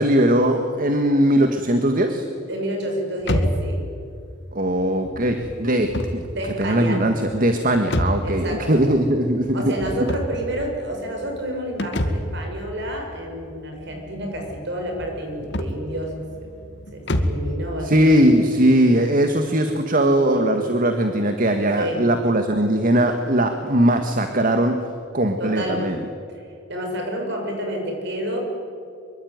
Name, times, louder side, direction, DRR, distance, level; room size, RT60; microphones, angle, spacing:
voice 1, 0.0-2.2 4.5-6.2 6.6-9.7 10.0-10.1 17.8-24.8 25.1-26.0, right 1 dB, 45° right, 6 dB, 1.7 m, -19 dB
voice 2, 2.5-3.9 6.3-7.1 8.2-8.8 9.5-16.5 16.9-18.3 21.8-22.1 25.4-26.0 26.3-28.4, right 1 dB, 65° right, 2 dB, 6.9 m, -29 dB
sound 1, 3.2-17.5, equal, 65° left, 2.1 m, -29 dB
25.0 x 23.5 x 9.5 m, 2.4 s
head